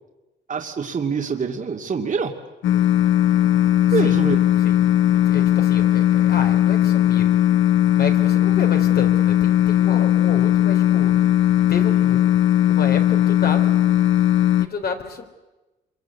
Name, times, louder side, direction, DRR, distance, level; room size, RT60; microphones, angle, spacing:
voice 1, 0.5-2.4 3.9-4.5, right 5 dB, 40° right, 3 dB, 2.5 m, -25 dB
sound 1, 2.6-14.7, left 12 dB, 80° left, 1.0 m, -18 dB
voice 2, 5.1-7.3 7.9-11.1 11.7-12.3 12.7-13.7 14.6-15.2, left 5 dB, 50° left, 5 dB, 4.0 m, -31 dB
26.0 x 23.5 x 8.4 m, 1.1 s
cardioid pair, 90°, 20 cm